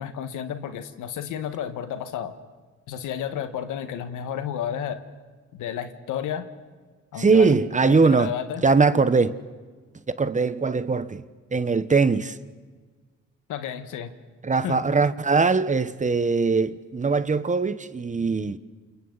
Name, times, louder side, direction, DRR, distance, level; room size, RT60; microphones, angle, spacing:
voice 1, 0.0-2.3 2.9-5.0 5.5-6.5 7.1-7.6 7.8-8.6 13.5-14.1 14.6-14.8, left 9 dB, 85° left, 1.7 m, -31 dB
voice 2, 7.2-8.3 8.6-9.4 10.2-11.2 11.5-12.4 14.4-18.6, right 4 dB, 25° right, 1.0 m, -21 dB
29.0 x 28.5 x 4.1 m
cardioid pair, 90°, 30 cm